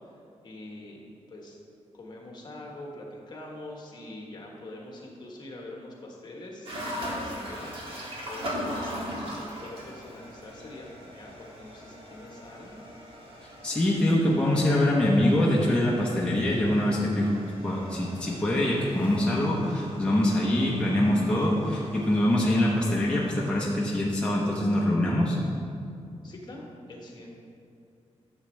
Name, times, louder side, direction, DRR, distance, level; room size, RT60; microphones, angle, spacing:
voice 1, 0.4-1.6 1.9-7.8 8.3-12.8 26.2-27.3, left 1 dB, 40° left, -1 dB, 1.3 m, -44 dB
sound 1, 6.7-23.5, equal, 50° right, 1.7 m, -40 dB
voice 2, 13.4-17.3 17.6-25.4, left 1 dB, 10° left, -5 dB, 0.8 m, -24 dB
11.0 x 7.1 x 3.2 m, 2.6 s
wide cardioid pair, 160°, 11 cm